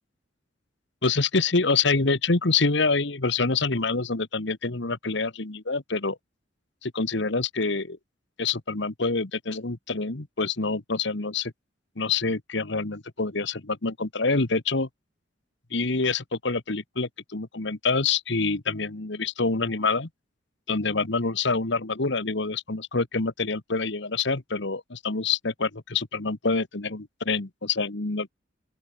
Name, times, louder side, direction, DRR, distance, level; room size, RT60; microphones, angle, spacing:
voice 1, 1.0-6.2 6.8-8.0 8.4-11.5 12.0-14.9 15.7-20.1 20.7-28.3, left 4 dB, 60° left, 1.5 m, -26 dB
open air
head